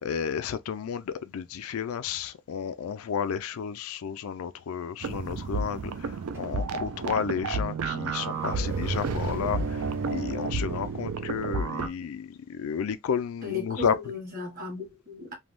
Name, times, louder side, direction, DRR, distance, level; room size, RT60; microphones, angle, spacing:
voice 1, 0.0-14.0, left 7 dB, 75° left, 0.3 m, -32 dB
sound 1, 5.0-11.9, right 4 dB, 80° right, 0.4 m, -31 dB
sound 2, 6.3-11.9, left 1 dB, 10° right, 0.5 m, -46 dB
voice 2, 13.4-15.3, left 4 dB, 40° right, 1.3 m, -35 dB
3.3 x 2.2 x 2.4 m
head